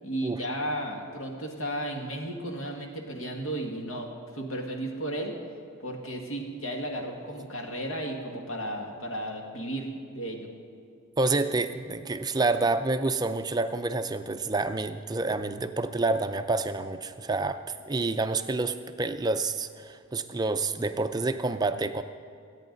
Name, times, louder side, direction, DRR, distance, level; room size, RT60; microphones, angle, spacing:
voice 1, 0.0-5.4 5.8-10.5, right 1 dB, 70° left, 1 dB, 1.8 m, -34 dB
voice 2, 11.2-22.0, right 3 dB, 20° right, 9 dB, 0.4 m, -28 dB
25.0 x 9.1 x 4.0 m, 2.3 s
head